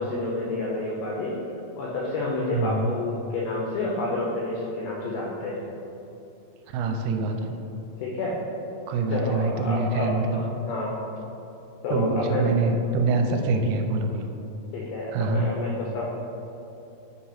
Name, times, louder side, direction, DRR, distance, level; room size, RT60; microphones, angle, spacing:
voice 1, 0.0-1.4 1.8-5.6 8.0-8.4 9.1-11.0 11.8-12.6 13.2-13.3 14.7-16.2, left 2 dB, 90° left, -4 dB, 2.4 m, -29 dB
voice 2, 2.5-2.9 6.7-7.6 8.9-10.4 11.9-14.3 15.1-15.5, right 3 dB, 85° right, 4 dB, 3.2 m, -25 dB
8.8 x 3.0 x 5.6 m, 3.0 s
omnidirectional pair, 5.9 m